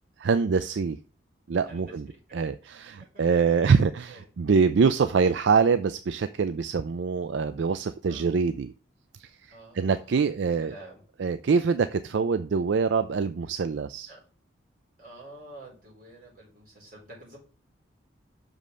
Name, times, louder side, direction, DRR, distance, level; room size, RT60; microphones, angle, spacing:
voice 1, 0.2-1.0 1.5-2.1 2.3-8.7 9.2-10.7 11.2-14.1, right 5 dB, 75° right, 12 dB, 0.4 m, -24 dB
voice 2, 3.0-4.3 8.1-8.3 9.5-11.0 14.1-14.2 15.0-17.4, right 2 dB, 45° right, -4 dB, 4.9 m, -49 dB
6.3 x 5.2 x 5.5 m, 0.37 s
head